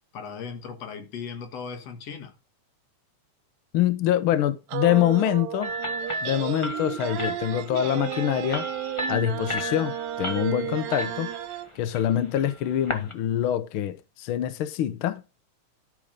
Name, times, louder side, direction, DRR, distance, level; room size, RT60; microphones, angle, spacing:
voice 1, 0.0-2.3, left 6 dB, 60° left, 2.7 m, -37 dB
voice 2, 3.7-5.7 6.2-8.7 9.1-11.3 11.8-15.2, left 12 dB, 90° left, 1.1 m, -25 dB
sound 1, 4.7-11.7, right 11 dB, 75° right, 2.0 m, -33 dB
sound 2, 5.6-13.1, equal, 35° left, 0.4 m, -35 dB
Laughter, 6.0-9.2, right 6 dB, 60° right, 2.6 m, -48 dB
12.0 x 6.4 x 5.1 m
omnidirectional pair, 3.4 m